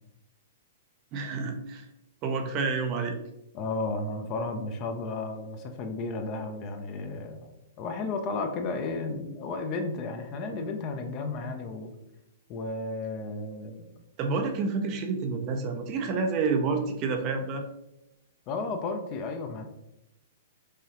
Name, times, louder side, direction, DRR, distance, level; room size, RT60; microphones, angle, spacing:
voice 1, 1.1-1.8 2.2-3.2 14.2-17.6, right 4 dB, 40° right, 5 dB, 0.6 m, -29 dB
voice 2, 3.5-7.5 7.8-11.9 12.5-13.9 18.5-19.6, left 3 dB, 40° left, 5 dB, 0.6 m, -33 dB
4.9 x 2.7 x 2.9 m, 0.86 s
hypercardioid pair, 120°, 0 cm